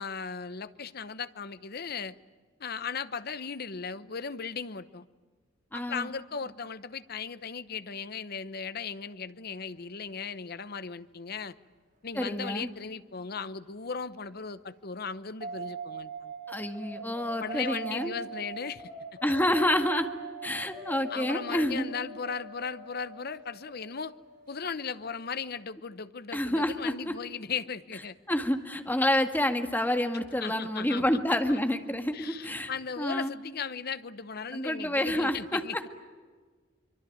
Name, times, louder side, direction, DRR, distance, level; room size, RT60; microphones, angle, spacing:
voice 1, 0.0-2.2 2.6-5.1 5.7-11.5 12.0-16.3 17.4-18.9 21.1-24.1 24.5-28.2 30.4-31.2 31.5-31.6 32.1-35.9, left 5 dB, 55° left, 14 dB, 0.9 m, -37 dB
voice 2, 5.7-6.1 12.2-12.7 16.5-18.1 19.2-20.1 20.4-21.9 26.3-27.1 28.3-32.7 33.0-33.3 34.5-35.8, left 1 dB, 10° left, 6 dB, 1.8 m, -28 dB
sound 1, 15.4-25.6, right 3 dB, 45° right, 4.8 m, -42 dB
25.0 x 23.5 x 9.3 m, 1.4 s
head